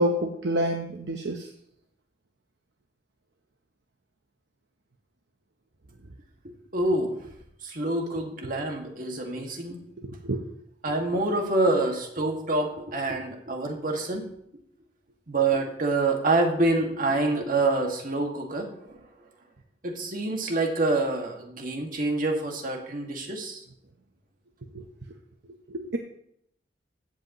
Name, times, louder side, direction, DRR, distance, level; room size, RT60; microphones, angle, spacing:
voice 1, 0.0-1.5 10.0-10.4 24.6-24.8 25.7-26.0, equal, 65° right, 4 dB, 0.8 m, -28 dB
voice 2, 6.7-7.2 7.6-9.8 10.8-14.2 15.3-19.0 19.8-23.6, right 2 dB, 50° right, 2 dB, 1.9 m, -26 dB
15.5 x 8.1 x 3.0 m, 0.72 s
head